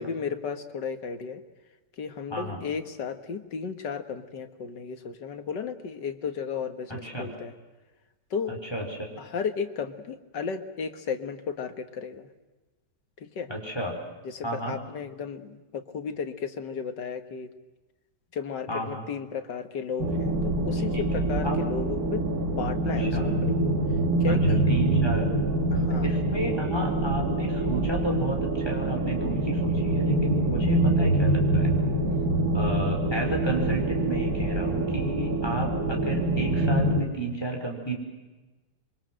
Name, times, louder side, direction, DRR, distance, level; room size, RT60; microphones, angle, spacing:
voice 1, 0.0-1.4 2.0-7.5 8.3-8.5 9.2-12.3 13.2-13.5 14.2-17.5 18.3-23.7 24.2-24.7 25.7-26.1 32.0-32.4, left 6 dB, 85° left, 9 dB, 2.2 m, -34 dB
voice 2, 2.3-2.6 6.9-7.3 8.5-9.1 13.5-14.0 14.4-14.8 18.7-19.0 20.9-21.0 21.3-21.6 22.8-23.3 24.3-25.3 26.0-31.7 32.5-37.9, right 1 dB, 15° left, 1 dB, 5.3 m, -32 dB
sound 1, 20.0-37.0, right 2 dB, 60° right, 2.7 m, -25 dB
27.0 x 23.5 x 7.7 m, 1.2 s
omnidirectional pair, 1.8 m